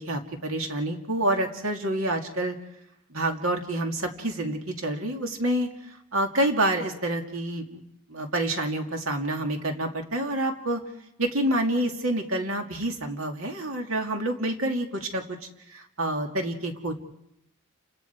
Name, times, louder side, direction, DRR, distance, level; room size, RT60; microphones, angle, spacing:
voice 1, 0.0-2.6 3.1-5.7 6.1-7.8 8.1-10.8 11.2-15.4 15.7-16.9, right 1 dB, 65° right, 3 dB, 2.6 m, -28 dB
29.5 x 26.0 x 4.7 m, 0.82 s
head